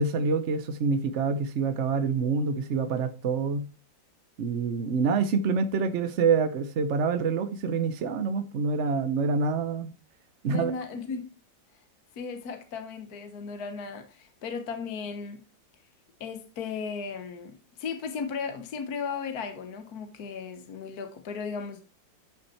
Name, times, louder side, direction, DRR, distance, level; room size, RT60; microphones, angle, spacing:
voice 1, 0.0-3.6 4.4-9.9 10.4-10.7, right 4 dB, 55° right, 0.8 m, -26 dB
voice 2, 10.4-11.3 12.2-15.4 16.2-21.8, left 5 dB, 55° left, 1.5 m, -36 dB
11.5 x 5.9 x 4.3 m
omnidirectional pair, 2.0 m